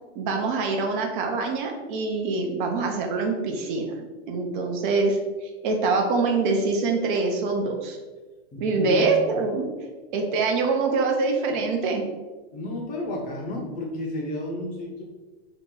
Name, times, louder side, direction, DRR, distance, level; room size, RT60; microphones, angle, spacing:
voice 1, 0.1-8.0 8.6-9.7 10.1-12.0, right 3 dB, 50° right, 2 dB, 0.6 m, -25 dB
voice 2, 8.5-9.1 12.5-15.0, left 1 dB, 25° left, -1 dB, 0.7 m, -32 dB
2.8 x 2.4 x 3.7 m, 1.3 s
hypercardioid pair, 130°, 32 cm